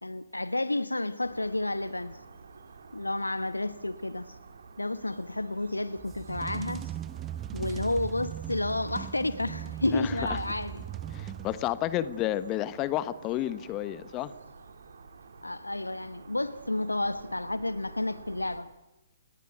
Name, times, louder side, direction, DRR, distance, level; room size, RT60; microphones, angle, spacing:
voice 1, 0.0-2.2 2.9-4.4 4.8-6.9 7.5-10.8 15.4-18.7, left 2 dB, 85° left, 1.0 m, -31 dB
sound 1, 1.2-18.6, right 4 dB, 65° right, 3.1 m, -50 dB
sound 2, 6.0-12.0, right 11 dB, 20° right, 0.8 m, -39 dB
voice 2, 9.9-10.4 11.1-14.3, left 13 dB, 25° left, 1.1 m, -31 dB
30.0 x 19.5 x 9.4 m
figure-of-eight pair, 125°, 0 cm